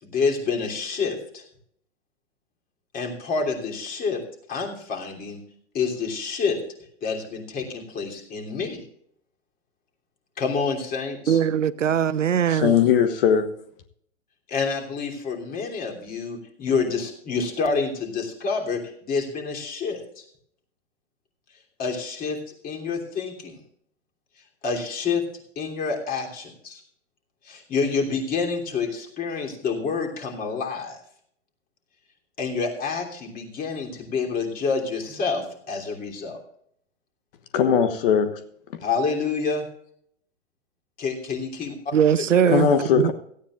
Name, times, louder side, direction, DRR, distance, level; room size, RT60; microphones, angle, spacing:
voice 1, 0.0-1.4 2.9-4.2 4.5-5.4 5.7-6.6 7.0-8.8 10.4-11.4 14.5-20.2 21.8-22.4 22.6-23.6 24.6-25.2 25.6-26.8 27.4-31.0 32.4-36.4 38.8-39.7 41.0-41.8 42.2-42.4, left 5 dB, 25° left, 3.1 m, -28 dB
voice 2, 11.3-12.8 41.9-43.1, right 8 dB, 85° right, 0.7 m, -21 dB
voice 3, 12.5-13.5 37.5-38.4 42.5-43.1, left 7 dB, 50° left, 1.3 m, -19 dB
17.0 x 13.5 x 2.5 m
hypercardioid pair, 115°, 37 cm